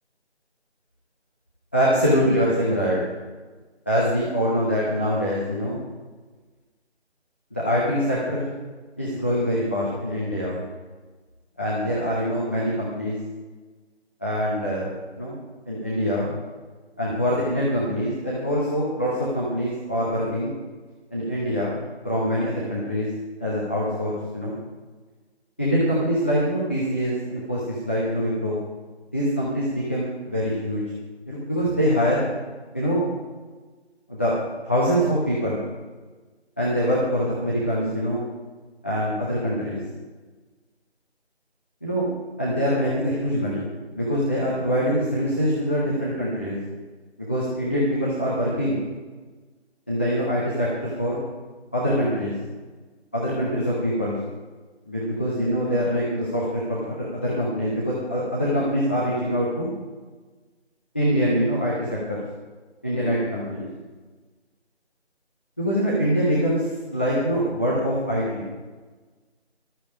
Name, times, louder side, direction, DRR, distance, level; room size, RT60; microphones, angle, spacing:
voice 1, 1.7-3.0 3.9-5.8 7.5-8.5 9.0-10.6 11.6-13.2 14.2-15.4 15.7-16.3 17.0-20.5 21.1-23.1 23.4-24.6 25.6-27.6 27.8-28.6 29.1-30.8 31.3-32.2 32.7-33.0 34.1-34.3 34.6-35.6 36.6-38.3 38.8-39.8 41.8-42.1 42.4-43.7 43.9-46.6 47.2-48.8 49.9-51.2 51.7-52.3 53.1-54.1 54.9-59.7 60.9-62.2 62.8-63.7 65.6-68.4, equal, 10° left, -8 dB, 0.9 m, -24 dB
14.5 x 13.0 x 5.0 m, 1.3 s
figure-of-eight pair, 165°, 33 cm